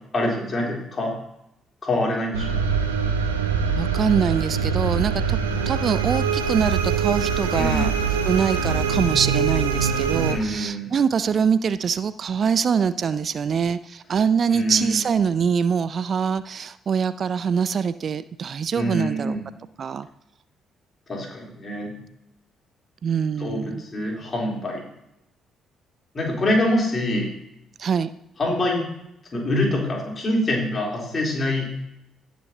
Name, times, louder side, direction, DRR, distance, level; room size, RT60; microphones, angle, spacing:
voice 1, 0.1-1.1 1.8-2.8 7.5-7.9 10.3-10.9 14.5-15.0 18.7-19.4 21.1-21.9 23.4-24.8 26.1-27.3 28.4-28.8 29.3-31.7, left 1 dB, 40° left, -2 dB, 3.4 m, -25 dB
sound 1, 2.3-10.3, right 6 dB, 85° right, 0.8 m, -23 dB
voice 2, 3.8-5.4 5.7-7.9 8.2-19.4 19.8-20.1 23.0-23.8 27.8-28.1, right 6 dB, 50° right, 15 dB, 0.4 m, -24 dB
17.5 x 6.1 x 2.8 m, 0.84 s
figure-of-eight pair, 45°, 0 cm